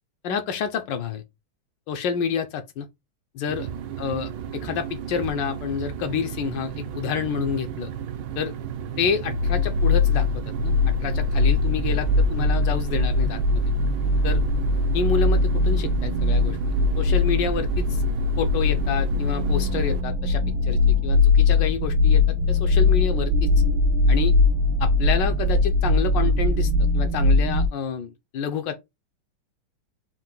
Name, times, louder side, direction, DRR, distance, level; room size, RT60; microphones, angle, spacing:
voice 1, 0.2-1.2 1.9-2.9 3.3-3.7 4.0-4.3 4.6-7.9 8.4-8.5 9.0-10.3 10.6-13.6 14.2-14.4 14.9-16.6 17.0-18.0 18.4-22.2 22.5-23.5 24.1-24.4 24.8-28.8, left 6 dB, 75° left, 1.2 m, -28 dB
sound 1, 3.5-20.0, right 8 dB, 85° right, 1.5 m, -34 dB
sound 2, 9.2-27.7, left 3 dB, 70° right, 1.1 m, -21 dB
4.5 x 2.5 x 3.7 m
omnidirectional pair, 2.2 m